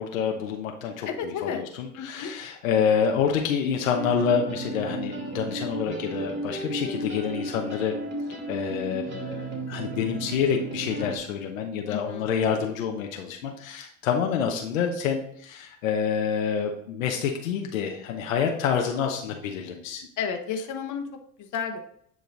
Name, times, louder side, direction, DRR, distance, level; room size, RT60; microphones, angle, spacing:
voice 1, 0.0-8.0 8.5-20.1, left 7 dB, 85° left, 2 dB, 0.9 m, -27 dB
voice 2, 1.0-1.6 2.0-2.3 11.9-12.3 12.7-12.8 20.2-21.1 21.4-21.8, left 7 dB, 50° left, 4 dB, 1.3 m, -32 dB
sound 1, 3.9-11.2, right 2 dB, 30° right, 2.4 m, -34 dB
9.4 x 3.2 x 3.9 m, 0.67 s
hypercardioid pair, 75°, 39 cm